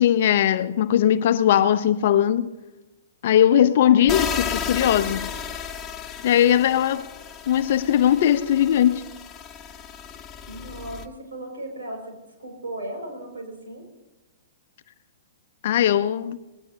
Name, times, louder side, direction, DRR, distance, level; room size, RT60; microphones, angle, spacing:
voice 1, 0.0-2.5 3.2-5.3 6.2-7.0 7.5-9.1 15.6-16.4, left 10 dB, 55° left, 0.9 m, -19 dB
sound 1, 4.1-11.1, left 7 dB, 20° left, 1.1 m, -34 dB
voice 2, 10.5-13.9, right 1 dB, 70° right, 6.0 m, -36 dB
20.0 x 19.0 x 2.9 m
figure-of-eight pair, 115°, 0 cm